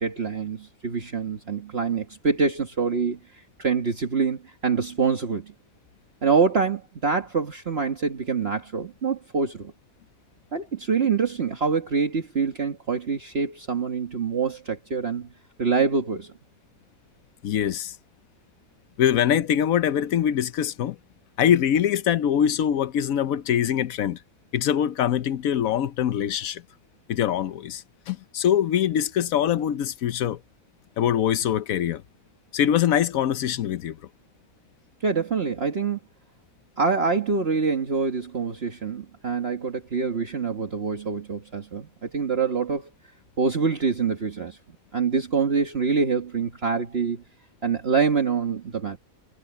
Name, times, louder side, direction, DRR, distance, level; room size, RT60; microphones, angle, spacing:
voice 1, 0.0-5.5 6.2-9.7 10.5-15.3 15.6-16.3 35.0-36.0 36.8-42.9 43.4-44.6 44.9-47.2 47.6-49.0, right 5 dB, 50° right, 1.8 m, -25 dB
voice 2, 17.4-17.9 19.0-21.0 21.4-24.2 24.5-26.6 27.1-30.4 31.0-32.0 32.5-34.0, left 10 dB, 85° left, 1.2 m, -23 dB
omnidirectional pair, 1.4 m